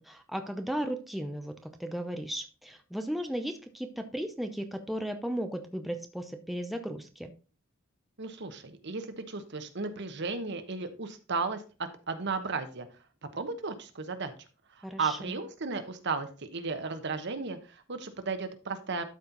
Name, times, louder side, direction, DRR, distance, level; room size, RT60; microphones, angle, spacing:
voice 1, 0.1-7.3 14.8-15.4, equal, ahead, 6 dB, 0.6 m, -35 dB
voice 2, 8.2-11.6 12.1-12.9 13.3-14.3 14.8-19.1, right 4 dB, 60° right, 8 dB, 1.1 m, -34 dB
12.0 x 4.4 x 3.9 m, 0.33 s
head